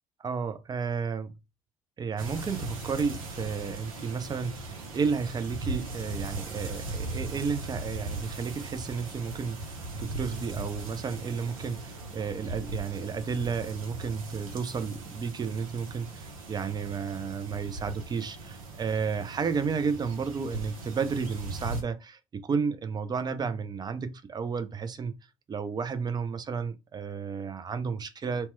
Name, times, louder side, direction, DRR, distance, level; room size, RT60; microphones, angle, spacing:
voice 1, 0.2-1.4 2.0-25.2 25.5-28.5, right 5 dB, 25° right, 0.5 m, -32 dB
sound 1, 2.2-21.8, right 2 dB, 75° right, 0.7 m, -39 dB
2.9 x 2.1 x 3.1 m
figure-of-eight pair, 60°, 18 cm